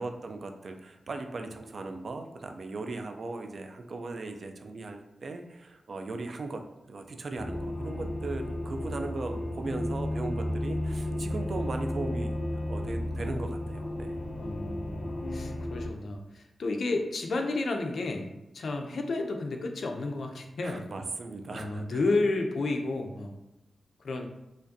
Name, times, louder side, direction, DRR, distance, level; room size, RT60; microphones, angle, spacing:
voice 1, 0.0-6.6 6.9-12.4 12.7-14.1 20.6-22.0, right 3 dB, 55° right, 5 dB, 0.4 m, -38 dB
sound 1, 7.4-15.9, left 1 dB, 45° left, 0.8 m, -33 dB
voice 2, 14.3-21.0 21.5-23.3 24.0-24.3, left 2 dB, 70° left, 3 dB, 0.5 m, -31 dB
5.0 x 2.5 x 2.7 m, 0.96 s
wide cardioid pair, 100°, 0 cm